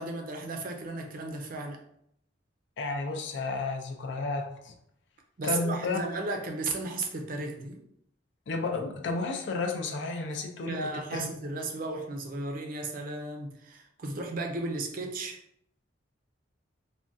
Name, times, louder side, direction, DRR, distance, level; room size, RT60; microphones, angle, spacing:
voice 1, 0.0-1.8 5.4-7.8 10.7-15.4, right 2 dB, 45° right, 3 dB, 0.5 m, -35 dB
voice 2, 2.8-4.7 5.4-6.0 8.5-10.8 11.1-11.3, left 3 dB, 65° left, 4 dB, 0.4 m, -32 dB
3.5 x 2.2 x 2.5 m, 0.72 s
head